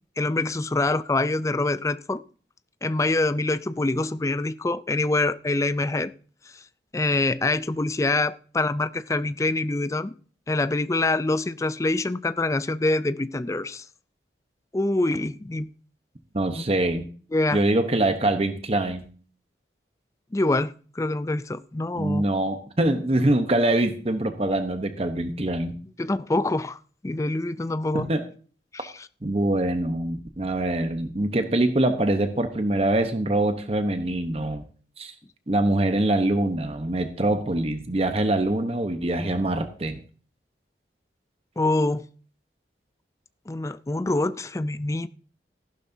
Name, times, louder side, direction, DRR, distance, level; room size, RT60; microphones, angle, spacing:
voice 1, 0.2-2.2 2.8-6.1 6.5-6.6 6.9-10.1 10.5-13.8 14.7-15.7 16.5-16.6 17.3-17.6 20.3-22.2 26.0-28.1 28.7-29.1 41.6-42.1 43.5-45.1, left 2 dB, 15° left, 0.4 m, -25 dB
voice 2, 16.3-17.0 17.5-19.1 21.9-25.8 27.9-28.2 29.2-34.6 35.0-35.1 35.5-40.0, right 1 dB, 35° right, 1.0 m, -24 dB
14.5 x 11.5 x 2.7 m
head